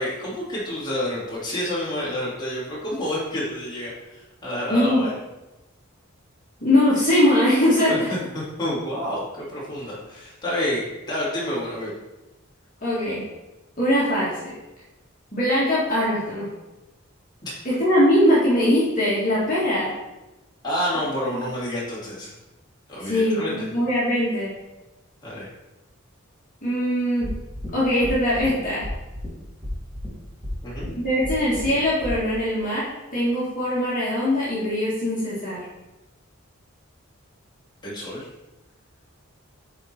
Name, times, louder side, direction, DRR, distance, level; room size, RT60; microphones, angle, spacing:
voice 1, 0.0-5.2 7.8-11.9 17.4-17.6 20.6-22.3 22.9-23.7 25.2-25.5 30.6-30.9 37.8-38.3, left 1 dB, 20° left, -7 dB, 2.3 m, -29 dB
voice 2, 4.7-5.1 6.6-8.1 12.8-13.2 13.8-14.4 15.3-16.5 17.7-19.9 21.3-21.4 23.0-24.5 26.6-27.3 27.7-28.8 31.0-35.6, left 1 dB, 40° left, -8 dB, 1.8 m, -21 dB
sound 1, 27.2-27.7 28.0-28.5 28.8-29.3 29.6-30.1 30.4-30.9 31.2-31.7 32.0-32.1, left 1 dB, 20° right, 1.5 m, -31 dB
8.7 x 3.7 x 4.3 m, 1.0 s
head